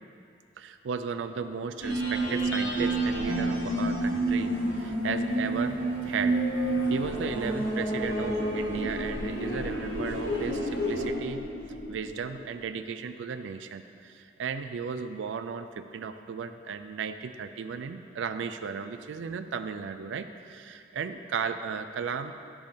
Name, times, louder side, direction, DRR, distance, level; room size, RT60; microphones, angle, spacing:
voice 1, 0.6-6.4 6.9-11.4 11.9-22.3, right 6 dB, 80° right, 10 dB, 0.4 m, -35 dB
sound 1, 1.8-11.1, right 1 dB, 85° left, 1.4 m, -30 dB
sound 2, 6.6-12.6, left 1 dB, 55° left, 1.5 m, -39 dB
sound 3, 7.0-10.7 11.0-11.1, equal, 20° left, 2.0 m, -33 dB
10.5 x 3.5 x 5.1 m, 2.4 s
head